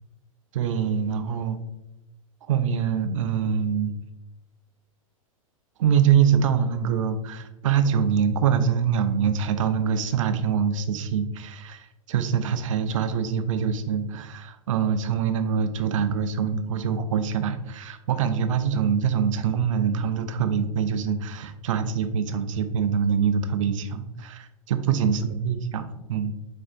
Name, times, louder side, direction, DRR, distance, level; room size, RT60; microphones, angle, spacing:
voice 1, 0.5-1.6 2.5-3.9 5.8-26.3, right 7 dB, 65° right, 10 dB, 0.5 m, -24 dB
4.3 x 4.2 x 2.5 m, 0.94 s
hypercardioid pair, 100°, 18 cm